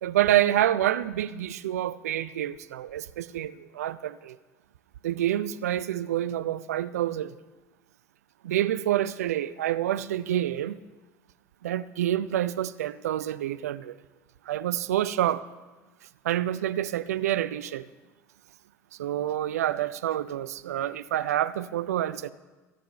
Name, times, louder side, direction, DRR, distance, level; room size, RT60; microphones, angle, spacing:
voice 1, 0.0-4.4 5.0-7.3 8.4-10.8 11.6-14.0 14.5-15.4 16.2-17.9 19.0-22.3, right 12 dB, 75° right, 0.5 m, -27 dB
16.0 x 10.5 x 5.5 m
figure-of-eight pair, 65°, 8 cm